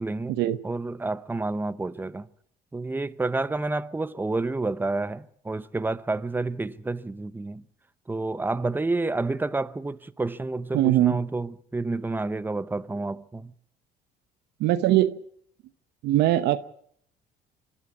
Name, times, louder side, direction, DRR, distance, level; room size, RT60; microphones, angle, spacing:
voice 1, 0.0-0.4 0.6-2.3 2.7-7.6 8.1-13.5, right 3 dB, 10° right, 0.7 m, -29 dB
voice 2, 10.7-11.2 14.6-15.2 16.0-16.6, right 14 dB, 80° right, 0.9 m, -21 dB
25.5 x 13.0 x 8.4 m
cardioid pair, 110°, 17 cm